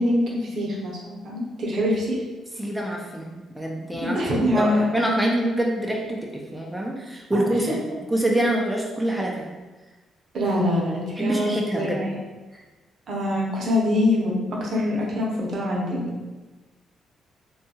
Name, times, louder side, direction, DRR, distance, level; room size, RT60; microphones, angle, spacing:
voice 1, 0.0-2.1 4.0-4.8 7.3-7.8 10.3-12.1 13.1-14.3 14.6-16.1, left 1 dB, 60° right, -3 dB, 0.7 m, -24 dB
voice 2, 2.6-7.8 8.1-9.5 11.2-12.0 12.5-12.6, right 1 dB, 5° right, -1 dB, 0.4 m, -26 dB
2.7 x 2.3 x 2.7 m, 1.2 s
cardioid pair, 90°, 0 cm